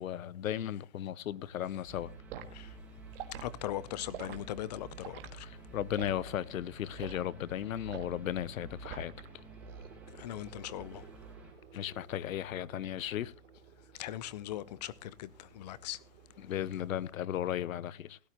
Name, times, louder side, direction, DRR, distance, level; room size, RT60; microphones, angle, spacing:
voice 1, 0.0-2.1 5.4-9.3 11.7-13.3 16.4-18.2, left 11 dB, 90° left, 0.8 m, -36 dB
sound 1, 1.2-17.1, right 5 dB, 65° right, 3.0 m, -58 dB
sound 2, 1.9-11.5, right 3 dB, 5° right, 3.2 m, -50 dB
Liquid, 2.3-2.5 3.1-3.5 4.1-4.4 5.0-5.3 5.9-6.2 7.0-7.2 7.9-8.2 8.8-9.3 9.6-9.9, right 9 dB, 45° right, 1.6 m, -44 dB
voice 2, 3.4-5.5 10.2-11.0 14.0-16.0, left 13 dB, 35° left, 0.5 m, -40 dB
17.0 x 12.5 x 2.9 m
hypercardioid pair, 150°, 39 cm